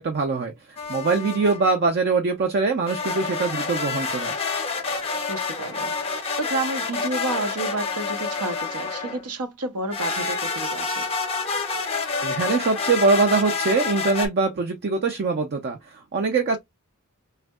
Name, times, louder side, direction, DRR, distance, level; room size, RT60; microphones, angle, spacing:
voice 1, 0.0-4.3 12.2-16.6, right 4 dB, 45° right, 0.4 m, -23 dB
sound 1, 0.8-1.8 2.9-9.3 9.9-14.3, left 4 dB, 25° left, 0.6 m, -28 dB
voice 2, 5.3-5.9 6.4-11.1, right 2 dB, 80° right, 0.7 m, -30 dB
3.3 x 2.6 x 2.3 m
head